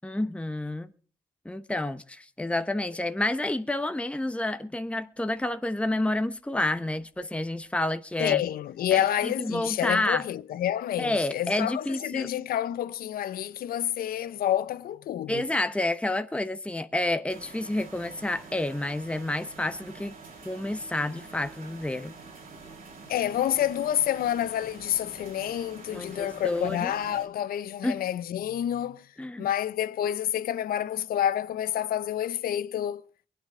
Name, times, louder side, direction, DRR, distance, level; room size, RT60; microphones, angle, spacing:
voice 1, 0.0-0.9 1.4-8.4 8.9-10.2 11.0-12.3 15.3-20.2 20.4-22.1 25.9-26.9 27.8-28.0 29.2-29.5, left 1 dB, 10° left, 1.0 m, -29 dB
voice 2, 8.2-15.4 23.1-29.1 29.4-33.0, left 11 dB, 75° left, 0.6 m, -28 dB
sound 1, 17.3-27.3, right 4 dB, 70° right, 3.7 m, -47 dB
23.5 x 9.1 x 3.6 m
supercardioid pair, 45°, 15 cm